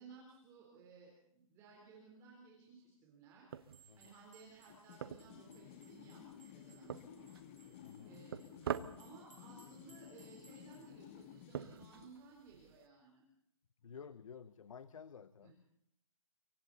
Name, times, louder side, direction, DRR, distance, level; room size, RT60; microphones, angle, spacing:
voice 1, 0.0-3.6 4.0-7.3 8.1-8.4 9.0-13.2 15.4-15.6, right 4 dB, 15° right, -2 dB, 3.9 m, -59 dB
sound 1, 3.5-12.9, right 9 dB, 45° right, 1.0 m, -48 dB
sound 2, 3.7-10.9, right 4 dB, 65° right, 4.5 m, -67 dB
sound 3, 4.7-12.2, left 11 dB, 25° left, 0.9 m, -56 dB
voice 2, 7.8-8.2 13.8-15.6, left 6 dB, 70° left, 15 dB, 1.0 m, -53 dB
26.5 x 23.5 x 4.2 m, 0.72 s
hypercardioid pair, 165°, 17 cm